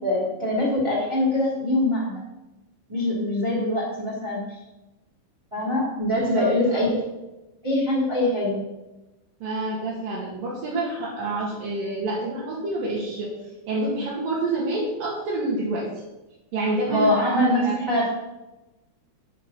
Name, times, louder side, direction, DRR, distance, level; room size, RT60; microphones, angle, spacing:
voice 1, 0.0-2.2 2.9-4.6 5.5-7.0 7.6-8.6 16.9-18.1, left 1 dB, 10° right, -6 dB, 2.9 m, -23 dB
voice 2, 6.2-6.8 9.4-13.3 13.7-15.9 16.5-17.8, right 2 dB, 70° right, -6 dB, 3.6 m, -28 dB
10.0 x 8.1 x 6.0 m, 1.0 s
omnidirectional pair, 4.2 m